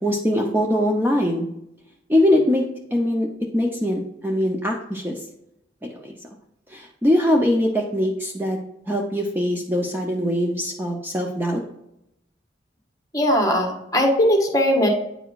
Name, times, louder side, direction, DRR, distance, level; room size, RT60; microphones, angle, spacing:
voice 1, 0.0-1.5 2.1-3.3 3.5-5.2 5.8-6.2 6.7-8.6 8.9-11.6, left 1 dB, 10° right, 0 dB, 0.6 m, -22 dB
voice 2, 13.1-14.9, equal, 20° left, 2 dB, 1.2 m, -19 dB
8.9 x 4.8 x 2.4 m, 0.81 s
head